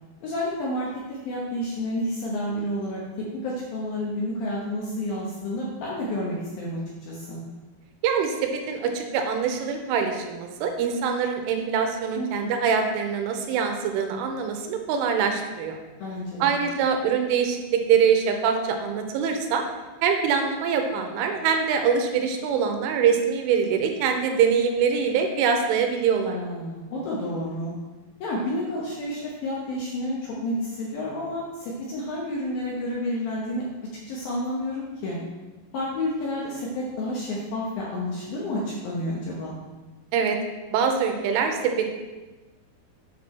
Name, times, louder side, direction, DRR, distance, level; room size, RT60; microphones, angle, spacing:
voice 1, 0.2-7.4 12.2-12.5 16.0-16.6 26.2-27.8 28.2-33.6 34.1-35.2 35.7-39.5, left 1 dB, 70° left, -4 dB, 2.3 m, -30 dB
voice 2, 8.0-15.8 16.4-19.6 20.0-26.4 40.1-40.4 40.7-41.9, right 6 dB, 90° right, 4 dB, 3.3 m, -24 dB
8.2 x 6.1 x 4.3 m, 1.2 s
omnidirectional pair, 5.5 m